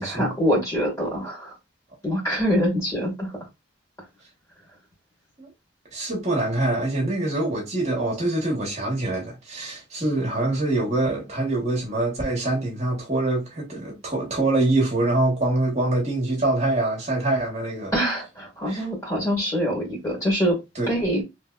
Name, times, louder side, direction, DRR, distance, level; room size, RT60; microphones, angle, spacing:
voice 1, 0.0-1.5 2.0-3.3 17.9-20.6 20.9-21.2, equal, 15° left, 1.8 m, -24 dB
voice 2, 5.9-17.9 18.7-18.8 20.7-20.9, right 2 dB, 35° right, 1.2 m, -24 dB
3.2 x 3.1 x 2.4 m
head